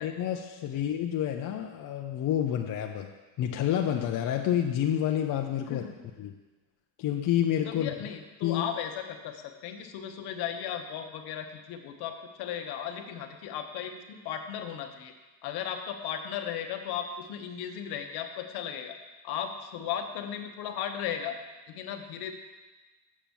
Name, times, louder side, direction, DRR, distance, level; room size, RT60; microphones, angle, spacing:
voice 1, 0.0-3.1 3.4-5.8 6.2-6.3 7.0-7.9 8.4-8.6, left 10 dB, 55° left, 2 dB, 0.8 m, -28 dB
voice 2, 7.6-15.1 15.4-19.0 19.2-21.4 21.7-22.3, left 9 dB, 75° left, 5 dB, 1.1 m, -36 dB
7.4 x 6.0 x 7.1 m, 1.2 s
cardioid pair, 125°, 39 cm